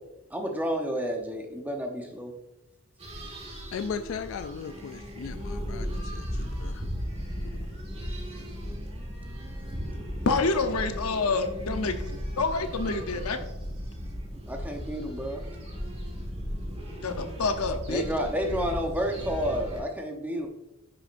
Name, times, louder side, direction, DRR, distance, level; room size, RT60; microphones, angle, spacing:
voice 1, 0.3-2.3 14.5-15.4 17.9-20.5, equal, 10° right, 2 dB, 0.8 m, -30 dB
sound 1, 3.0-19.8, equal, 30° right, 1.6 m, -36 dB
voice 2, 3.7-6.8 7.5-7.7, left 6 dB, 60° left, 10 dB, 0.3 m, -37 dB
voice 3, 10.3-12.0 12.4-13.4 17.0-18.0, left 3 dB, 90° left, 7 dB, 0.8 m, -27 dB
9.7 x 6.2 x 2.6 m, 0.90 s
head